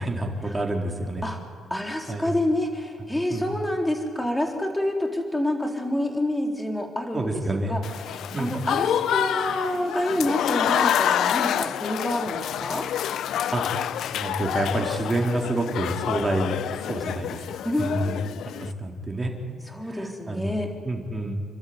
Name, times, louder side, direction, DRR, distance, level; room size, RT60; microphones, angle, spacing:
voice 1, 0.0-1.2 2.1-2.3 3.3-3.5 7.1-7.8 8.3-8.6 13.5-13.6 14.1-17.4 17.8-18.1 18.4-19.3 19.8-20.6 20.8-21.4, right 2 dB, 15° right, 1 dB, 4.1 m, -28 dB
voice 2, 1.7-8.1 8.4-12.9 17.6-17.9 19.6-20.7, left 1 dB, 10° left, 3 dB, 4.0 m, -28 dB
Applause / Crowd, 7.8-18.7, left 10 dB, 75° left, 0.6 m, -27 dB
29.5 x 12.5 x 9.6 m, 2.1 s
cardioid pair, 90°, 0 cm